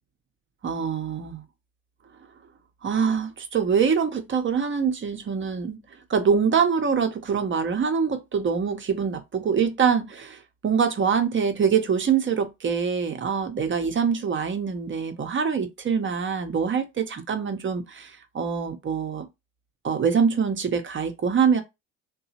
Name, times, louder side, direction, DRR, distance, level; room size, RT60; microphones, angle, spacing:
voice 1, 0.6-1.4 2.8-5.8 6.1-19.3 19.8-21.6, right 6 dB, 30° right, 0.8 m, -24 dB
2.8 x 2.3 x 2.8 m
hypercardioid pair, 65°, 38 cm